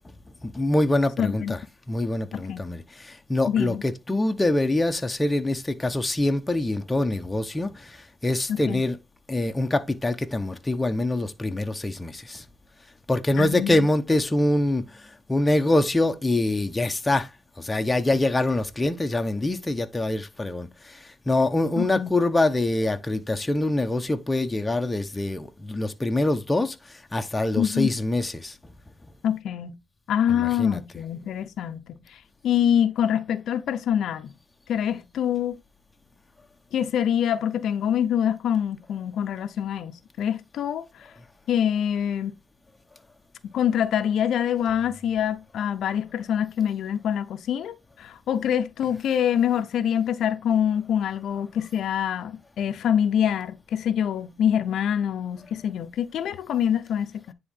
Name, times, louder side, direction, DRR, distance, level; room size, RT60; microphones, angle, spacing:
voice 1, 0.4-1.6 1.9-9.0 9.3-12.4 13.1-17.3 17.6-28.6 30.3-30.8, left 2 dB, 15° left, 1.1 m, -25 dB
voice 2, 1.2-1.5 2.3-2.7 3.5-3.8 8.5-8.8 13.4-13.8 21.8-22.1 27.6-27.9 29.2-29.8 30.1-34.3 34.7-35.6 36.7-41.1 41.5-42.3 43.5-57.3, left 9 dB, 70° left, 0.7 m, -25 dB
9.7 x 3.8 x 3.6 m
cardioid pair, 90°, 0 cm